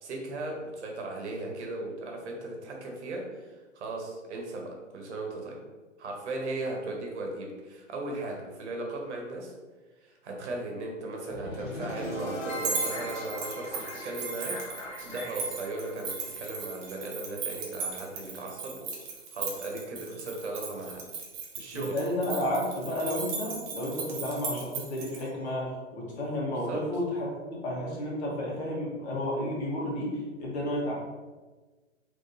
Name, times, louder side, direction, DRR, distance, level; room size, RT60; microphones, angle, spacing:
voice 1, 0.0-5.6 6.0-9.5 10.0-14.5 15.0-18.9 19.3-21.1 21.6-21.9 26.5-26.8, right 2 dB, 60° right, 0 dB, 1.0 m, -37 dB
sound 1, 11.3-17.4, equal, 40° left, 0.9 m, -39 dB
sound 2, 12.5-25.2, right 5 dB, 25° right, 0.6 m, -37 dB
voice 2, 21.7-30.9, left 1 dB, 55° left, -3 dB, 1.4 m, -32 dB
3.6 x 3.0 x 2.7 m, 1.3 s
figure-of-eight pair, 120°, 38 cm